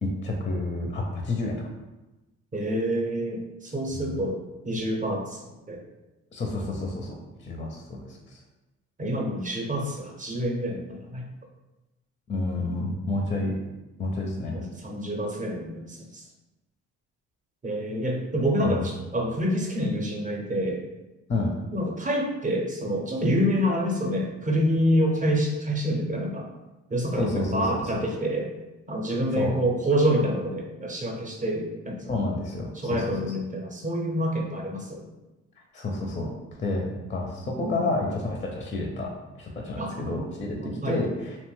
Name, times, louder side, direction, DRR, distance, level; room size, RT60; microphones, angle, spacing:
voice 1, 0.0-1.6 3.9-4.1 6.3-7.2 7.4-8.4 12.3-13.6 14.0-14.6 18.6-18.9 21.3-21.5 27.2-28.1 29.3-29.6 32.1-33.2 35.7-39.1 39.4-41.4, left 2 dB, 25° left, 1 dB, 0.4 m, -30 dB
voice 2, 2.5-5.8 9.0-11.2 14.5-16.3 17.6-20.8 21.7-26.5 26.9-28.5 28.9-32.2 32.7-35.1 37.6-37.9 39.8-40.3 40.6-41.0, equal, 25° right, 0 dB, 0.6 m, -27 dB
2.8 x 2.1 x 3.1 m, 1.1 s
cardioid pair, 90°, 30 cm